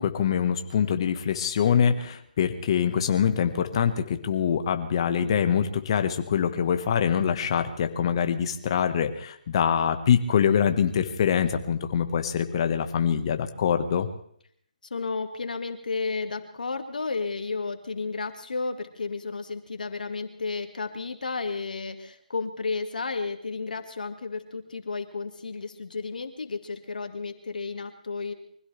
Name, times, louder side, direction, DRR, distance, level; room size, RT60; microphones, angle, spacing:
voice 1, 0.0-14.1, left 8 dB, 35° left, 8 dB, 1.6 m, -24 dB
voice 2, 14.9-28.3, left 4 dB, 70° left, 6 dB, 2.3 m, -32 dB
24.0 x 16.0 x 3.5 m, 0.67 s
hypercardioid pair, 160°, 5 cm